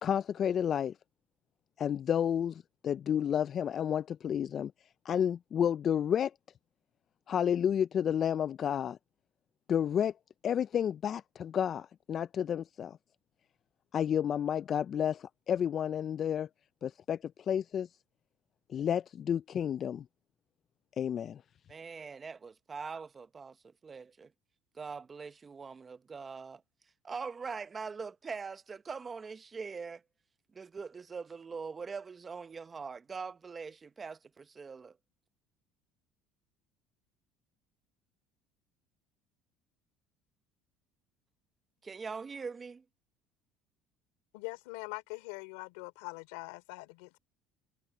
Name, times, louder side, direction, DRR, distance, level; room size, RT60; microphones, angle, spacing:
voice 1, 0.0-0.9 1.8-4.7 5.1-6.3 7.3-9.0 9.7-10.1 10.4-13.0 13.9-16.5 16.8-17.9 18.7-20.0 21.0-21.4, left 9 dB, 45° left, 0.3 m, -31 dB
voice 2, 21.7-23.6 23.8-24.3 24.7-26.6 27.0-30.0 30.5-35.0 41.8-42.8, right 5 dB, 30° right, 0.9 m, -42 dB
voice 3, 44.3-47.2, left 26 dB, 85° left, 3.0 m, -43 dB
supercardioid pair, 95°, 0 cm